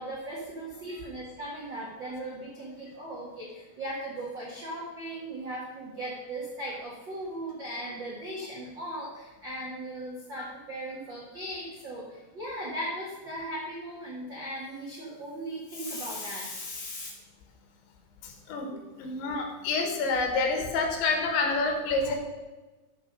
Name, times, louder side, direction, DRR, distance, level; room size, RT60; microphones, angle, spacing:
voice 1, 0.0-17.1, right 1 dB, 60° right, -5 dB, 1.2 m, -38 dB
voice 2, 18.2-18.7 19.0-22.2, left 3 dB, 85° left, 3 dB, 3.8 m, -28 dB
13.0 x 5.6 x 5.4 m, 1.2 s
omnidirectional pair, 5.1 m